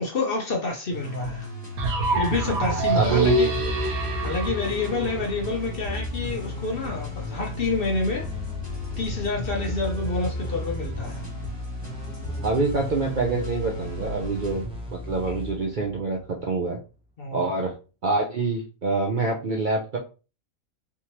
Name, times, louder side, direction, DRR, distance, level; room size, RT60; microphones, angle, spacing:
voice 1, 0.0-1.5 2.1-3.5 4.2-8.3 9.0-11.2 15.3-15.4 17.2-17.5, left 3 dB, 50° left, 0.8 m, -28 dB
sound 1, 0.9-14.6, left 3 dB, 10° left, 1.6 m, -35 dB
sound 2, 1.8-5.7, right 2 dB, 85° right, 1.3 m, -26 dB
voice 2, 2.9-3.3 12.4-14.7 14.9-16.8 17.3-17.7 18.0-20.0, right 3 dB, 55° right, 0.5 m, -25 dB
sound 3, 3.5-16.8, equal, 5° right, 0.5 m, -37 dB
3.5 x 2.9 x 2.9 m
omnidirectional pair, 1.5 m